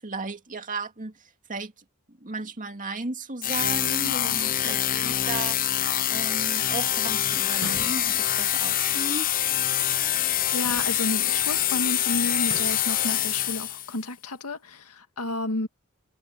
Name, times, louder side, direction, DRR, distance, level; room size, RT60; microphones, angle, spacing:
voice 1, 0.0-1.7 2.1-9.3, right 3 dB, 35° right, 2.3 m, -35 dB
sound 1, 3.4-14.0, left 11 dB, 40° left, 0.7 m, -25 dB
voice 2, 4.0-4.4 9.9-15.7, left 2 dB, 85° left, 2.0 m, -32 dB
sound 2, 7.5-8.3 10.5-11.2 12.4-12.9, right 3 dB, 55° right, 1.1 m, -41 dB
head